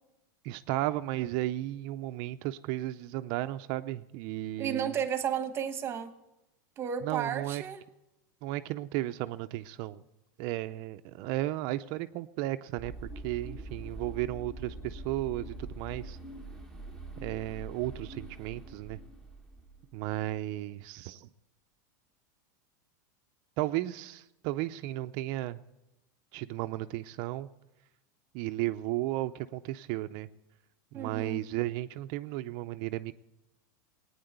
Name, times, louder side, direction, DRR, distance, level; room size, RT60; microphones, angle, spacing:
voice 1, 0.4-5.0 7.0-7.6 8.4-10.0 10.4-16.2 17.2-19.0 19.9-21.3 23.6-25.6 26.3-27.5 28.3-30.3 30.9-33.1, right 16 dB, 45° right, 11 dB, 0.5 m, -34 dB
voice 2, 4.6-6.2 6.8-7.8 30.9-31.4, right 8 dB, 25° right, 10 dB, 1.1 m, -33 dB
sound 1, 12.8-20.2, right 2 dB, 5° left, 1.2 m, -44 dB
18.0 x 9.5 x 8.0 m, 0.94 s
supercardioid pair, 150°, 11 cm